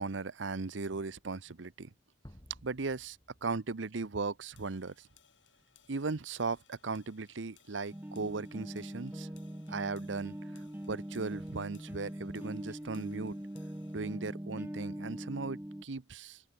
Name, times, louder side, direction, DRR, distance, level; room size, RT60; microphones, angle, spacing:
voice 1, 0.0-1.9 2.6-5.1 5.9-9.3 9.7-13.4 13.9-16.4, right 4 dB, 85° right, 0.9 m, -37 dB
sound 1, 2.2-4.7, equal, 20° left, 2.7 m, -57 dB
sound 2, 4.6-14.2, left 8 dB, 85° left, 5.5 m, -66 dB
sound 3, 7.9-15.8, equal, 10° right, 0.9 m, -42 dB
open air
head